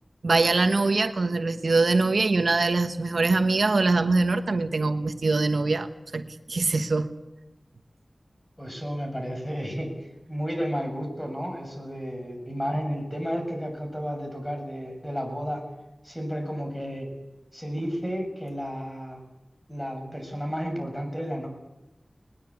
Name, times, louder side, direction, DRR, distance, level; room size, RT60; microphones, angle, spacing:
voice 1, 0.2-5.9 6.1-6.2 6.5-7.1, right 3 dB, 80° right, 8 dB, 1.2 m, -23 dB
voice 2, 8.6-15.6 16.0-17.1 17.5-19.2 19.7-21.5, equal, 10° left, 3 dB, 7.1 m, -32 dB
20.5 x 20.5 x 8.5 m, 0.97 s
wide cardioid pair, 65°, 0 cm